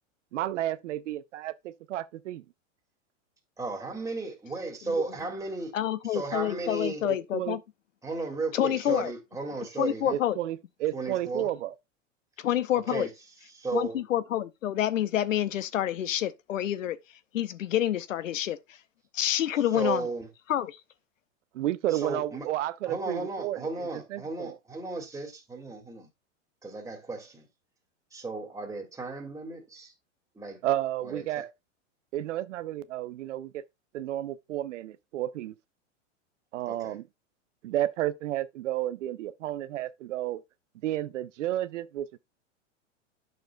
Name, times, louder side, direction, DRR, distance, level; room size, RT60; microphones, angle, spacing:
voice 1, 0.3-2.4 7.0-7.6 10.1-11.7 21.5-23.7 24.1-24.6 30.6-31.5 32.1-33.6 33.9-35.5 36.5-37.0 37.6-40.4 40.8-42.1, right 13 dB, 75° right, 0.6 m, -32 dB
voice 2, 3.6-5.7 6.1-7.0 8.0-10.2 10.9-11.5 12.9-13.1 13.5-14.0 19.7-20.3 21.9-22.5 22.9-26.1 26.6-27.5 28.1-29.9 30.4-30.6 31.0-31.3 36.7-37.0, right 3 dB, 10° right, 2.0 m, -34 dB
voice 3, 5.7-7.6 8.5-9.1 9.8-10.4 12.4-13.1 13.7-17.0 17.3-18.8 19.1-20.1 20.5-20.8, left 11 dB, 85° left, 0.7 m, -28 dB
9.0 x 6.5 x 2.2 m
hypercardioid pair, 110°, 37 cm